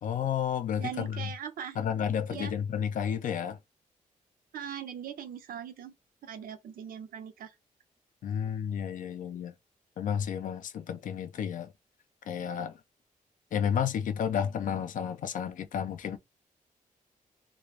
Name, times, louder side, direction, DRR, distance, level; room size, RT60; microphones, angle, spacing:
voice 1, 0.0-1.3 1.8-3.6 8.2-9.5 10.0-11.7 12.3-12.8 13.5-16.2, left 8 dB, 65° left, 0.4 m, -31 dB
voice 2, 0.8-1.8 2.3-2.5 4.5-5.9 6.2-7.5, right 8 dB, 85° right, 0.5 m, -40 dB
2.4 x 2.1 x 3.2 m
wide cardioid pair, 140°, 14 cm